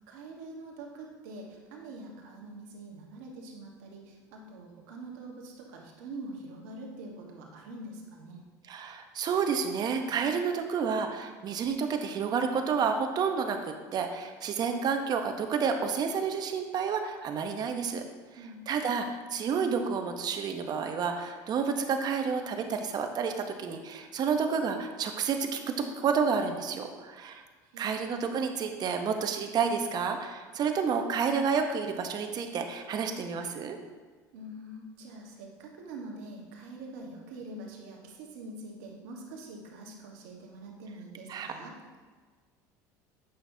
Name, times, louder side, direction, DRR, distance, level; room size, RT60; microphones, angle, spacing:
voice 1, 0.1-8.4 18.3-18.6 27.6-28.0 34.3-41.7, right 2 dB, 80° right, -1 dB, 1.4 m, -44 dB
voice 2, 8.7-18.0 18.7-27.4 27.8-33.8 41.3-41.5, right 6 dB, 45° right, 6 dB, 0.8 m, -30 dB
8.5 x 6.0 x 2.7 m, 1.5 s
supercardioid pair, 95°, 9 cm